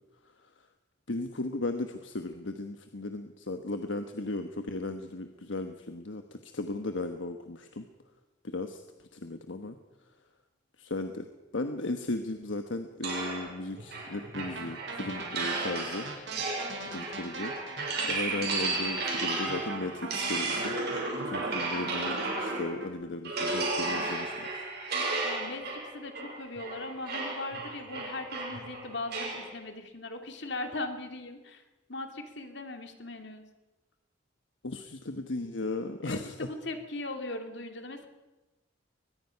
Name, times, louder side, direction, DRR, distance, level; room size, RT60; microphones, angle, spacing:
voice 1, 1.1-7.8 8.4-8.8 9.1-9.8 10.8-11.3 11.5-16.1 16.8-17.5 18.1-20.8 21.2-24.7 34.6-36.5, left 2 dB, 80° left, 7 dB, 1.2 m, -36 dB
sound 1, 13.0-22.8 23.2-29.5, right 3 dB, 60° right, 6.8 m, -34 dB
sound 2, 14.3-22.9, right 2 dB, 75° right, 4.8 m, -41 dB
voice 2, 25.2-31.6 31.9-33.4 36.0-38.1, left 2 dB, 65° left, 5 dB, 2.5 m, -39 dB
22.0 x 20.5 x 5.8 m, 1.1 s
head